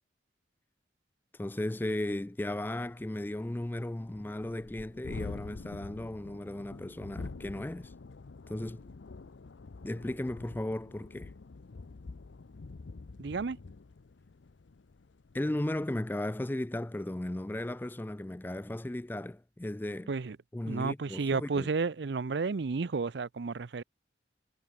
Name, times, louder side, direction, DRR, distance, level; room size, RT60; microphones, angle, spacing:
voice 1, 1.3-7.9 8.5-8.9 9.8-11.3 15.3-20.1 20.5-21.7, left 1 dB, 10° left, 0.4 m, -36 dB
Thunderstorm, 1.6-1.7 2.1-2.2 2.4-16.1, left 3 dB, 85° left, 0.6 m, -47 dB
voice 2, 13.2-13.6 20.1-20.4 20.6-23.8, right 4 dB, 70° right, 0.5 m, -32 dB
head